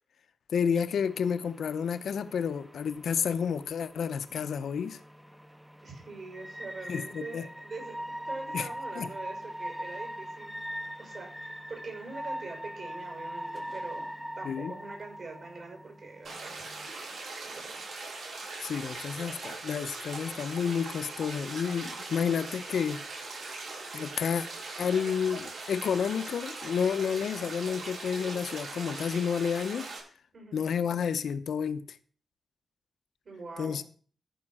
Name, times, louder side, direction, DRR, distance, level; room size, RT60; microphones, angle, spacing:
voice 1, 0.5-5.0 6.9-7.5 8.5-8.7 9.0-9.1 14.4-14.7 18.6-23.0 23.9-24.5 24.8-29.9 30.5-31.8 33.6-33.8, left 7 dB, 75° left, 0.8 m, -30 dB
sound 1, 0.9-16.9, equal, ahead, 0.5 m, -42 dB
voice 2, 5.8-8.0 8.3-10.5 11.0-14.0 14.4-17.8 30.3-30.6 33.2-33.8, right 3 dB, 50° right, 6.0 m, -44 dB
sound 2, 16.2-30.0, right 3 dB, 70° right, 6.3 m, -40 dB
14.0 x 5.7 x 6.4 m
wide cardioid pair, 135°, 0 cm